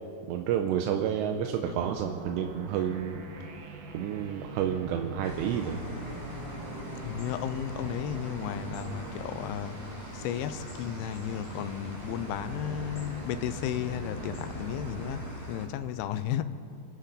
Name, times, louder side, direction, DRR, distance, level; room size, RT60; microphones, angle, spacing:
voice 1, 0.3-3.2 3.9-5.8, right 9 dB, 85° right, 4 dB, 2.9 m, -30 dB
sound 1, 1.6-15.3, right 2 dB, 65° right, 2.7 m, -42 dB
sound 2, 5.2-15.7, left 1 dB, 25° left, 3.4 m, -44 dB
voice 2, 7.0-9.8 10.1-16.4, left 11 dB, 80° left, 11 dB, 2.3 m, -34 dB
29.0 x 11.5 x 4.1 m, 2.6 s
omnidirectional pair, 4.9 m